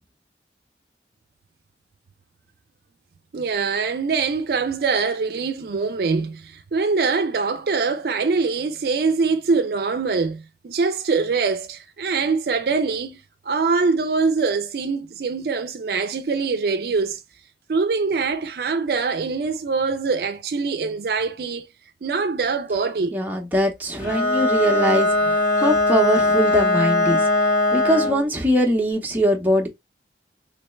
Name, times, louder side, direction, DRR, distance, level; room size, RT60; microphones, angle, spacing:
voice 1, 3.3-13.2 13.5-17.2 17.7-21.7 22.0-23.2, right 4 dB, 55° right, 0.4 m, -23 dB
voice 2, 23.1-25.1 25.6-27.2 27.7-29.7, equal, 10° right, 0.7 m, -21 dB
Bowed string instrument, 24.0-28.3, left 2 dB, 85° left, 1.9 m, -20 dB
3.3 x 3.1 x 3.1 m
head